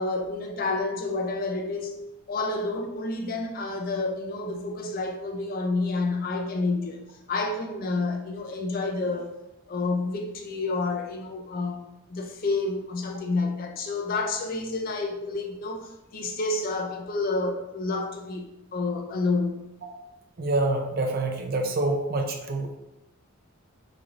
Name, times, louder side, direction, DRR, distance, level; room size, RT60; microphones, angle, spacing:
voice 1, 0.0-2.0 2.3-7.0 7.3-9.3 9.7-19.5, left 3 dB, 40° left, 3 dB, 0.4 m, -29 dB
voice 2, 20.4-22.8, right 2 dB, 45° right, 4 dB, 0.4 m, -26 dB
3.9 x 3.2 x 2.4 m, 0.92 s
head